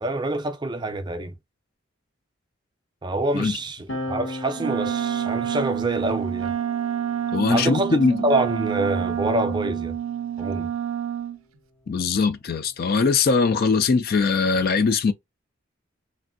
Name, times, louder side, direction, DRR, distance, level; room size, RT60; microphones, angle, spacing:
voice 1, 0.0-1.3 3.0-6.6 7.5-10.0 10.4-10.7, right 2 dB, 20° right, 0.5 m, -26 dB
sound 1, 3.9-10.8 11.8-13.6, left 1 dB, 70° left, 1.0 m, -40 dB
Wind instrument woodwind instrument, 4.6-11.4, right 9 dB, 90° right, 0.4 m, -28 dB
voice 2, 7.3-8.2 11.9-15.1, left 4 dB, 45° left, 0.3 m, -21 dB
3.1 x 2.5 x 2.5 m
head